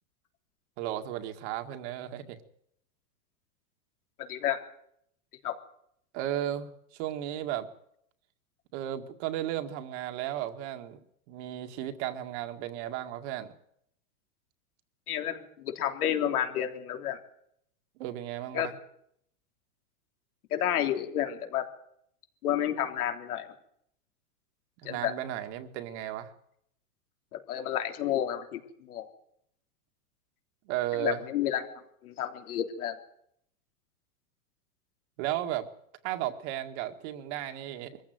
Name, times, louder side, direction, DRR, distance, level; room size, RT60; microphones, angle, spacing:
voice 1, 0.8-2.4 6.1-6.7 7.0-7.7 8.7-11.0 11.3-13.5 18.0-18.8 24.8-26.3 30.7-31.2 35.2-35.7 36.0-38.0, right 12 dB, 50° right, 7 dB, 2.0 m, -34 dB
voice 2, 15.1-17.2 18.5-18.7 20.5-21.6 22.4-23.5 24.9-25.1 27.3-29.1 31.0-31.6 32.0-32.9, left 10 dB, 80° left, 5 dB, 3.5 m, -30 dB
22.5 x 15.0 x 9.3 m, 0.72 s
supercardioid pair, 155°, 44 cm